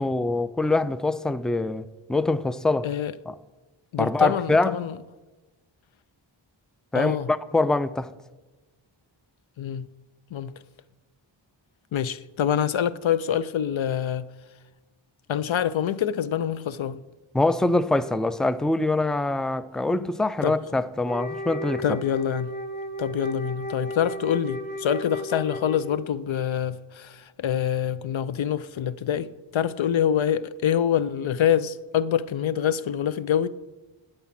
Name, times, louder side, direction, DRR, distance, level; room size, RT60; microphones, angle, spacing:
voice 1, 0.0-2.9 3.3-3.4 4.0-4.7 6.9-8.1 17.3-21.8, left 2 dB, ahead, 0.3 m, -24 dB
voice 2, 3.9-5.0 6.9-7.3 9.6-9.9 10.3-10.5 11.9-14.3 15.3-17.0 20.4-20.5 21.8-22.5 23.0-33.5, left 9 dB, 70° left, 0.6 m, -25 dB
Wind instrument woodwind instrument, 21.0-26.2, equal, 20° left, 1.7 m, -34 dB
12.5 x 8.0 x 5.9 m
wide cardioid pair, 70°, 48 cm